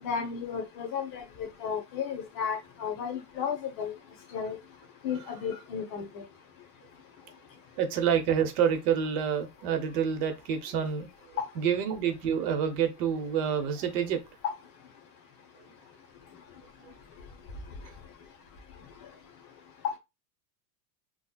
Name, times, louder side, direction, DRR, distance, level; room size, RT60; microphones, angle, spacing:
voice 1, 0.0-3.9 4.3-4.6 5.0-6.2 11.4-11.5 14.4-14.5 19.8-19.9, left 7 dB, 45° left, 1.0 m, -33 dB
voice 2, 7.8-11.1 11.6-14.2, right 8 dB, 60° right, 0.9 m, -27 dB
3.8 x 2.3 x 2.3 m
supercardioid pair, 120°, 49 cm